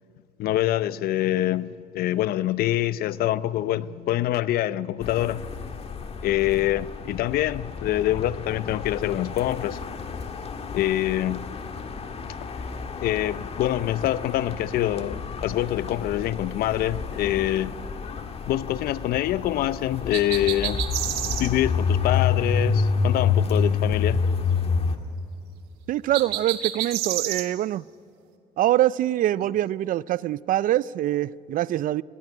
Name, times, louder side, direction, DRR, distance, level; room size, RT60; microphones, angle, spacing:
voice 1, 0.4-5.5 6.2-9.8 10.7-11.5 13.0-17.7 18.5-20.8 21.2-24.2, left 13 dB, 70° left, 0.6 m, -25 dB
sound 1, 5.0-25.0, left 5 dB, 40° left, 1.7 m, -29 dB
sound 2, 20.1-21.5 26.1-27.5, right 13 dB, 85° right, 1.4 m, -29 dB
voice 2, 25.9-27.8 28.6-32.0, right 13 dB, 55° right, 0.4 m, -24 dB
20.0 x 17.5 x 9.8 m
cardioid pair, 95°, 16 cm